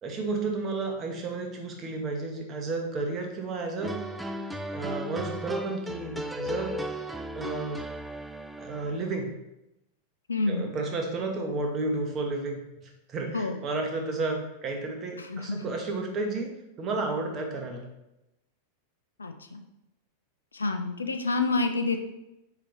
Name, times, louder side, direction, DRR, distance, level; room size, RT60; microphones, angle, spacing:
voice 1, 0.0-4.0 4.3-6.8 7.3-7.9 8.6-9.3 10.5-17.8, right 3 dB, 30° right, 2 dB, 0.9 m, -32 dB
sound 1, 3.8-9.0, equal, 5° right, 0.3 m, -36 dB
voice 2, 10.3-10.7 13.3-13.6 15.2-15.7 19.2-19.6 20.5-22.0, left 3 dB, 75° left, 6 dB, 0.4 m, -28 dB
4.7 x 3.8 x 3.0 m, 0.91 s
figure-of-eight pair, 90°, 0 cm